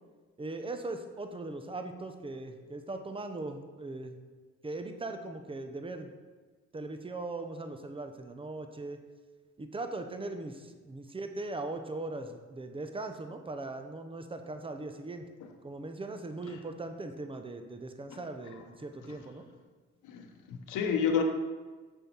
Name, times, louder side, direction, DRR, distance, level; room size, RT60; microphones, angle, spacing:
voice 1, 0.4-4.2 4.6-6.1 6.7-9.0 9.6-15.3 15.6-19.5, right 2 dB, 20° right, 6 dB, 0.8 m, -39 dB
voice 2, 20.0-21.2, left 7 dB, 85° left, 5 dB, 0.9 m, -30 dB
6.9 x 5.6 x 4.4 m, 1.4 s
cardioid pair, 90°, 30 cm